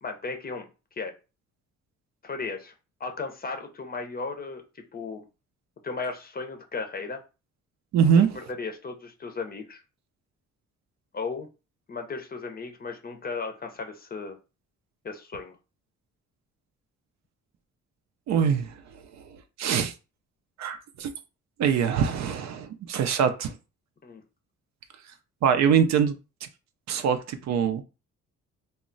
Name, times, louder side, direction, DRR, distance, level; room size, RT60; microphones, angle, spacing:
voice 1, 0.0-0.7 1.0-1.1 2.2-2.7 3.0-4.6 4.9-5.3 5.8-7.2 8.3-9.8 11.1-11.5 11.9-14.4 15.0-15.6 24.0-24.2, left 4 dB, 30° left, 0.6 m, -35 dB
voice 2, 7.9-8.4 18.3-18.7 19.6-19.9 20.6-21.1 21.6-23.5 25.4-26.2 26.4-26.5 26.9-27.8, right 7 dB, 65° right, 0.5 m, -23 dB
2.2 x 2.0 x 3.8 m
cardioid pair, 90°, 30 cm